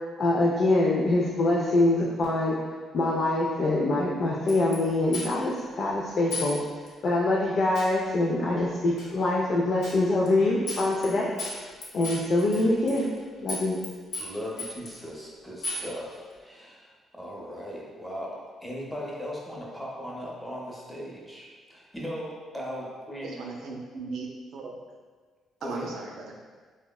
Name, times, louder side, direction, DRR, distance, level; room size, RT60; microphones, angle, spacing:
voice 1, 0.2-2.6 2.9-6.6 7.0-11.3 11.9-13.1 13.3-13.8, left 2 dB, 55° left, -4 dB, 0.3 m, -24 dB
sound 1, 4.5-4.8 5.1-5.5 6.3-6.5 6.9-7.0 7.8-8.0 9.0-9.1 9.8-10.0 10.3-10.4 10.7-11.1 11.4-13.2 13.5-13.9 14.1-15.0 15.6-15.9, left 2 dB, 85° left, 0.7 m, -35 dB
voice 2, 14.2-23.5 25.6-25.9, equal, 5° left, -4 dB, 0.6 m, -38 dB
voice 3, 23.2-24.3 24.5-24.7 25.6-26.2, right 4 dB, 75° right, 0 dB, 0.4 m, -37 dB
3.6 x 2.0 x 2.2 m, 1.5 s
cardioid pair, 90°, 0 cm